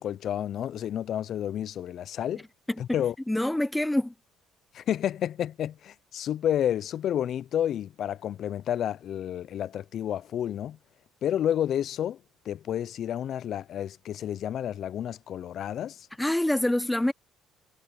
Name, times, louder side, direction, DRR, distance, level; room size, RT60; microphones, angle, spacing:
voice 1, 0.0-2.4 2.8-3.1 4.7-10.8 11.2-12.2 12.5-16.1, left 10 dB, 45° left, 0.4 m, -30 dB
voice 2, 3.3-4.1 16.2-17.1, left 1 dB, 5° left, 0.6 m, -26 dB
cardioid pair, 170°, 0 cm